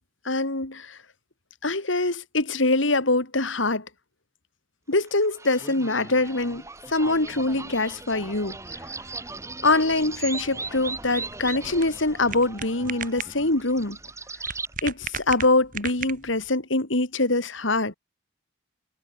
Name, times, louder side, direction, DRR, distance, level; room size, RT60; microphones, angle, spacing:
voice 1, 0.2-1.0 1.6-3.9 4.9-6.6 6.9-8.6 9.6-14.0 14.8-17.9, left 2 dB, 75° left, 3.0 m, -24 dB
sound 1, 5.0-14.7, right 3 dB, 15° right, 2.8 m, -38 dB
sound 2, 10.9-16.5, right 7 dB, 40° right, 6.2 m, -37 dB
head